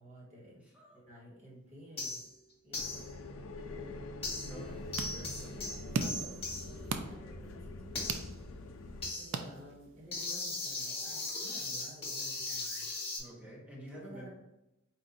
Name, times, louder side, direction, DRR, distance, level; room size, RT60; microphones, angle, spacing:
voice 1, 0.0-0.6 0.9-2.2 2.6-3.0 3.6-4.1 5.5-8.3 9.1-12.8 13.9-14.3, equal, 35° right, -4 dB, 1.5 m, -53 dB
voice 2, 0.7-1.0 4.5-4.8 5.1-5.5 13.2-14.3, right 1 dB, 5° right, -3 dB, 1.0 m, -49 dB
sound 1, 2.0-2.3 2.7-3.1 4.2-4.7 4.9-13.2, left 2 dB, 30° left, 1.2 m, -40 dB
sound 2, 2.8-9.1, left 2 dB, 70° left, 0.4 m, -45 dB
sound 3, 4.5-10.1, right 4 dB, 60° right, 0.4 m, -41 dB
4.4 x 2.6 x 3.9 m, 0.91 s
head